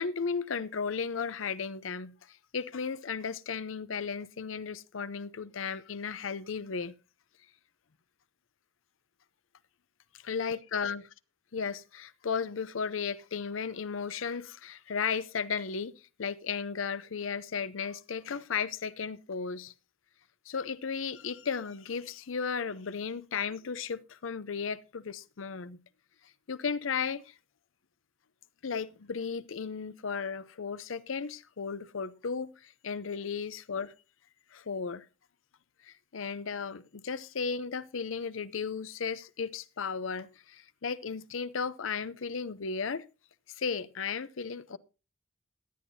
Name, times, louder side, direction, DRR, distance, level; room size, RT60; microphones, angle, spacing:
voice 1, 0.0-7.0 10.3-11.0 11.5-15.9 16.2-19.7 20.5-25.8 26.5-27.4 28.6-33.9 34.5-35.1 35.8-43.0 43.5-44.8, left 5 dB, 90° left, 0.6 m, -35 dB
17.5 x 11.0 x 2.7 m
head